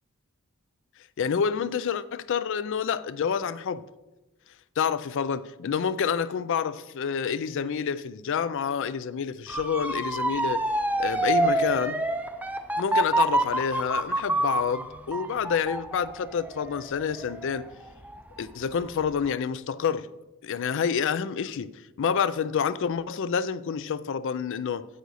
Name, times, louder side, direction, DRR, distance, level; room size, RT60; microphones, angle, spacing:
voice 1, 1.2-3.8 4.8-10.6 11.0-12.0 12.8-17.7 18.4-20.1 20.4-21.7 22.0-24.9, left 7 dB, 60° left, 0.4 m, -28 dB
Motor vehicle (road) / Siren, 9.5-18.4 18.8-19.3, right 2 dB, 5° right, 0.5 m, -27 dB
9.3 x 8.0 x 4.1 m
head